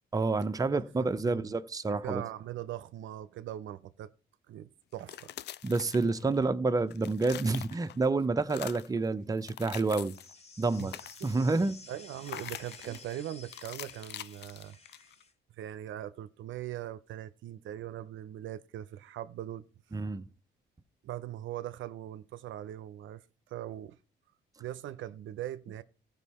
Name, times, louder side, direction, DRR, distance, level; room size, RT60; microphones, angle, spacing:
voice 1, 0.1-2.2 5.6-10.1 10.6-10.9 11.2-11.8 19.9-20.2, right 3 dB, 20° right, 0.6 m, -29 dB
voice 2, 0.7-1.5 1.9-4.1 4.5-5.3 10.8-10.9 11.2-11.6 11.9-14.8 15.6-19.7 21.0-24.0 24.6-25.8, right 12 dB, 75° right, 0.6 m, -41 dB
sound 1, 4.9-6.5 6.8-8.1 8.4-9.0 9.4-10.3 10.7-11.5 12.2-13.1 13.5-15.2, left 12 dB, 60° left, 0.4 m, -45 dB
sound 2, 10.1-15.3, left 3 dB, 30° left, 1.2 m, -53 dB
14.5 x 5.5 x 4.2 m
cardioid pair, 90°, 20 cm